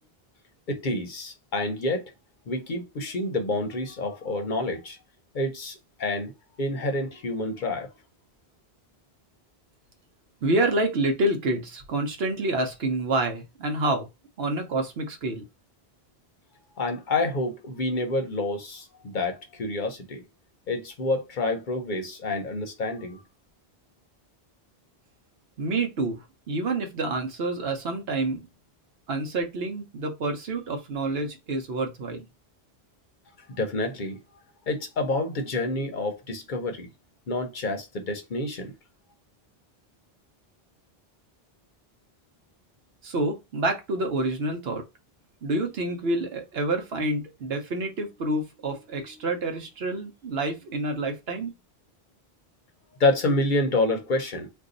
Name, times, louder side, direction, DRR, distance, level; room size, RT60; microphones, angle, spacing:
voice 1, 0.7-2.1 2.5-5.0 5.3-6.3 6.6-7.9 16.8-20.2 20.7-23.2 33.5-34.2 34.7-36.9 37.3-38.7 53.0-54.5, left 2 dB, 55° left, 0.7 m, -28 dB
voice 2, 10.4-14.1 14.4-15.4 25.6-28.5 29.1-32.3 43.0-44.8 45.4-51.5, right 2 dB, 75° right, 1.0 m, -28 dB
2.6 x 2.3 x 3.7 m
omnidirectional pair, 1.0 m